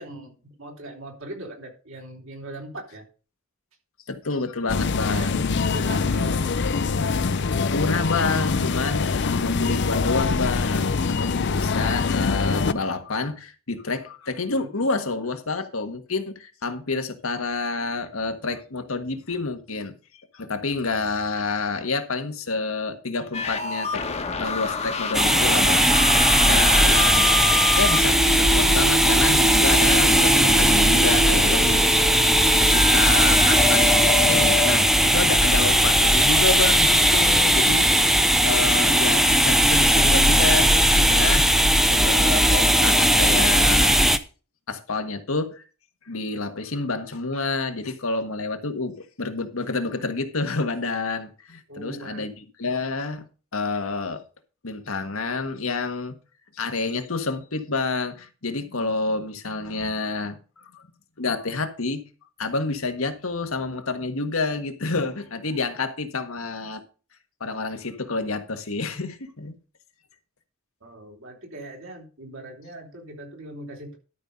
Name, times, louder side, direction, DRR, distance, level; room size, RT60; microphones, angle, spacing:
voice 1, 0.0-3.0 5.1-5.3 5.6-6.6 14.6-14.7 51.7-52.3 70.8-74.0, right 1 dB, 65° right, 3.5 m, -40 dB
voice 2, 4.1-5.4 7.7-19.9 20.3-24.0 24.4-27.3 27.7-32.0 32.4-37.8 38.4-41.4 41.9-44.0 44.7-45.6 46.0-52.3 52.6-53.3 53.5-54.2 54.6-56.2 56.6-60.9 61.2-62.0 62.4-66.8 67.4-69.5, left 3 dB, 85° left, 1.5 m, -28 dB
sound 1, 4.7-12.7, left 4 dB, 55° left, 0.6 m, -24 dB
sound 2, 23.3-34.8, left 2 dB, 30° left, 1.2 m, -28 dB
sound 3, 25.1-44.2, equal, ahead, 0.6 m, -18 dB
12.5 x 5.4 x 5.4 m
head